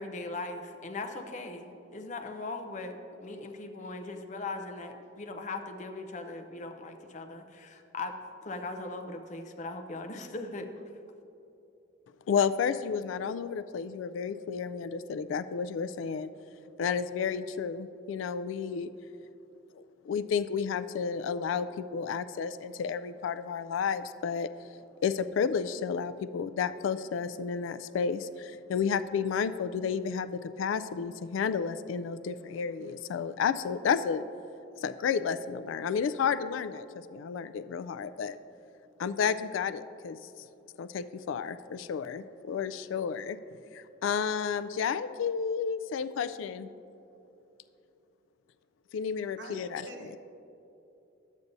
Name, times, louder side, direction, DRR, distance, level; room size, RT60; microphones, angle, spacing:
voice 1, 0.0-8.2 8.4-10.7, left 3 dB, 40° left, 5 dB, 0.6 m, -39 dB
voice 2, 12.3-16.3 16.8-18.9 19.7-24.5 25.0-34.2 34.8-36.9 37.1-38.4 39.0-40.2 40.8-43.4 43.7-46.7 48.9-49.9, left 6 dB, 85° left, 14 dB, 0.3 m, -31 dB
voice 3, 49.4-50.2, right 2 dB, 65° right, 3 dB, 0.8 m, -45 dB
12.0 x 8.3 x 2.6 m, 2.8 s
head